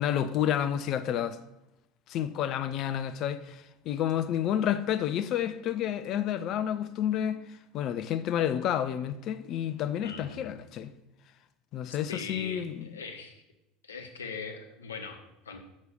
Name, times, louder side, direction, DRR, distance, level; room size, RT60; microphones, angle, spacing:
voice 1, 0.0-1.4 2.1-7.4 7.7-10.9 11.7-12.9, left 10 dB, 45° left, 0.4 m, -30 dB
voice 2, 10.0-10.6 11.9-13.4 13.8-15.6, left 5 dB, 75° left, 1.0 m, -41 dB
6.4 x 6.3 x 5.1 m
figure-of-eight pair, 70°, 0 cm